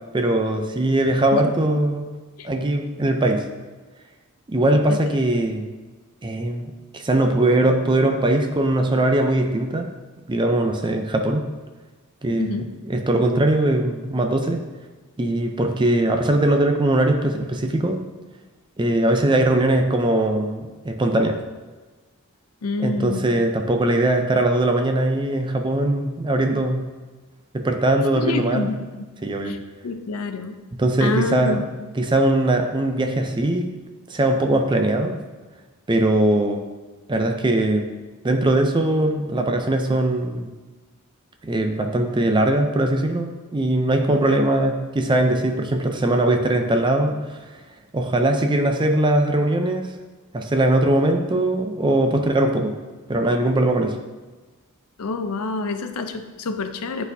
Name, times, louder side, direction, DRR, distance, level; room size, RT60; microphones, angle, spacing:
voice 1, 0.1-2.1 2.4-3.5 4.5-5.7 6.2-9.9 10.3-11.5 12.2-14.6 15.2-18.0 18.8-21.4 22.8-26.8 27.5-28.7 29.2-29.6 30.7-31.6 32.0-33.7 34.1-35.1 35.9-36.6 37.1-37.9 38.2-40.5 41.4-47.4 47.9-49.9 50.3-52.7 53.1-54.0, right 1 dB, 20° right, 5 dB, 0.5 m, -20 dB
voice 2, 22.6-23.3 28.1-28.8 29.5-29.6 29.8-30.6 31.0-31.6 55.0-57.0, left 3 dB, 75° left, 7 dB, 0.5 m, -27 dB
9.5 x 4.1 x 2.7 m, 1.3 s
head